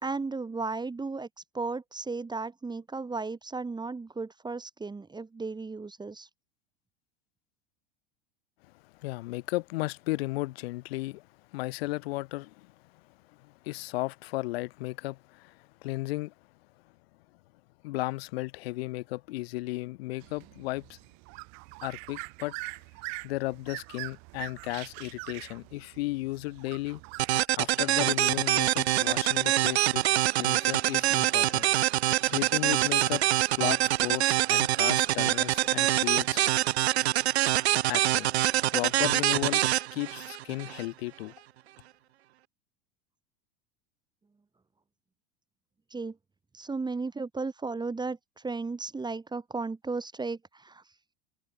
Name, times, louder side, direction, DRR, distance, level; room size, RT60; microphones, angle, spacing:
voice 1, 0.0-1.3 1.5-6.3 45.9-46.2 46.5-50.8, right 3 dB, 15° right, 1.8 m, -35 dB
voice 2, 8.8-11.3 11.5-12.7 13.4-16.3 17.8-21.0 21.8-22.5 23.2-27.0 27.5-30.0 30.4-31.7 32.2-33.2 33.5-36.4 37.9-38.3 38.7-39.6 39.9-41.3, left 20 dB, 70° left, 6.7 m, -34 dB
sound 1, 20.2-27.5, right 32 dB, 60° right, 6.5 m, -43 dB
sound 2, 27.2-40.8, right 15 dB, 90° right, 0.5 m, -25 dB
hypercardioid pair, 95°, 31 cm